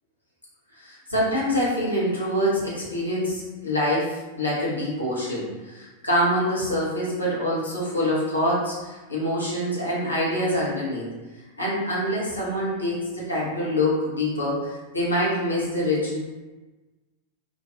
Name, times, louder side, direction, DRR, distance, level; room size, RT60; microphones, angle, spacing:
voice 1, 0.8-11.1 11.6-16.2, equal, 85° left, -7 dB, 0.8 m, -25 dB
2.5 x 2.2 x 2.5 m, 1.2 s
figure-of-eight pair, 90°, 0 cm